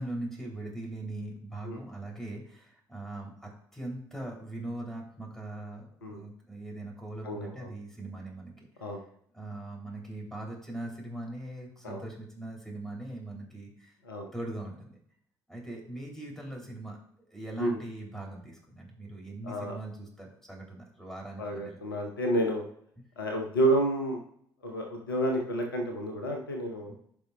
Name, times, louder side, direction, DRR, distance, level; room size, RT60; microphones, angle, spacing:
voice 1, 0.0-8.7 9.3-14.0 14.3-15.0 15.5-17.0 17.3-21.8 26.9-27.0, right 2 dB, 5° left, 0 dB, 3.0 m, -40 dB
voice 2, 7.2-7.7 8.8-9.0 11.8-12.0 14.0-14.3 17.6-17.8 19.4-19.7 21.4-22.6 23.2-24.2 24.6-26.9, right 1 dB, 80° left, 3 dB, 0.9 m, -30 dB
15.0 x 5.3 x 2.3 m, 0.67 s
figure-of-eight pair, 50°, 11 cm